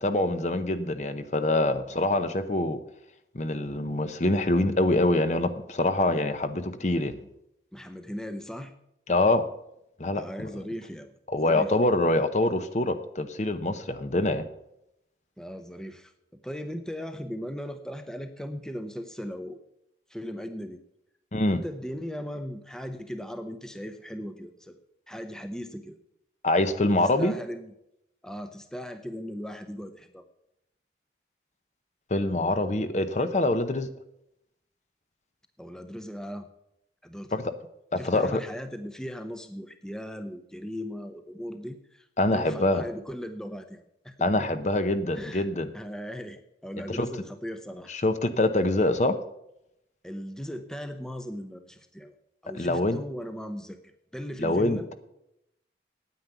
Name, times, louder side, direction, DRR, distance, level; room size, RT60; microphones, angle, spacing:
voice 1, 0.0-2.8 3.3-7.2 9.1-9.4 10.0-10.5 11.3-14.4 21.3-21.6 26.4-27.3 32.1-33.9 37.3-37.5 37.9-38.4 42.2-42.9 44.2-45.7 46.9-47.1 47.9-49.2 52.5-53.0 54.4-54.9, left 2 dB, 40° left, 10 dB, 0.8 m, -25 dB
voice 2, 7.7-8.7 10.1-11.2 11.4-11.7 15.4-19.6 20.1-20.8 21.5-24.8 25.1-26.0 27.0-27.7 28.2-30.2 35.6-36.5 37.0-37.5 38.0-42.1 42.3-44.5 45.1-45.5 45.7-47.9 50.0-52.1 52.4-54.9, equal, 5° left, 8 dB, 0.6 m, -38 dB
9.5 x 9.1 x 6.9 m, 0.82 s
head